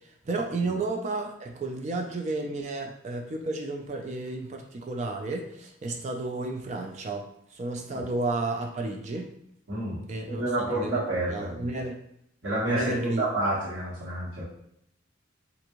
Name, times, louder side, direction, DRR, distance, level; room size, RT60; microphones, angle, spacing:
voice 1, 0.3-7.3 7.5-9.3 10.1-10.4 10.7-12.0 12.6-13.3, right 2 dB, 35° right, 3 dB, 0.3 m, -32 dB
voice 2, 10.3-11.7 12.4-14.4, right 1 dB, 85° right, -8 dB, 1.2 m, -29 dB
3.4 x 2.5 x 3.0 m, 0.75 s
head